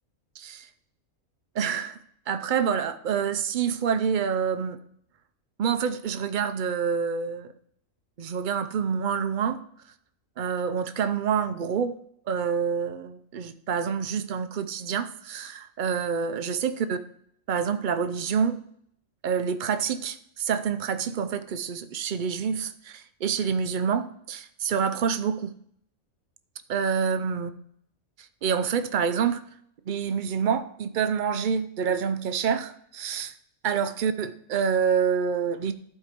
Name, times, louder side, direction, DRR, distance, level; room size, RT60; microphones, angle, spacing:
voice 1, 1.6-2.0 2.3-4.8 5.6-7.5 8.2-9.6 10.4-12.0 12.3-17.0 17.5-18.6 19.2-25.5 26.7-27.5 28.4-29.4 29.9-33.3 33.6-35.7, right 7 dB, 60° right, 10 dB, 0.5 m, -27 dB
11.5 x 4.5 x 5.0 m, 0.69 s
omnidirectional pair, 1.4 m